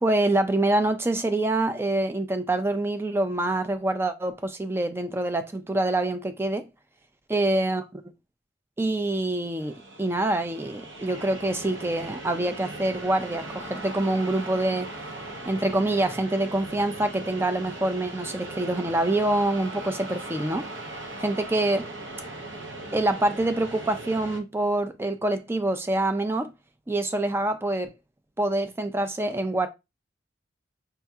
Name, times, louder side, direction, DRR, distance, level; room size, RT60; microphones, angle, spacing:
voice 1, 0.0-6.7 7.3-8.0 8.8-14.9 15.5-20.6 21.2-21.9 22.9-26.5 26.9-27.9 28.4-29.7, right 2 dB, 10° right, 0.4 m, -26 dB
sound 1, 9.6-24.4, right 2 dB, 75° right, 0.9 m, -39 dB
5.6 x 2.7 x 2.3 m
head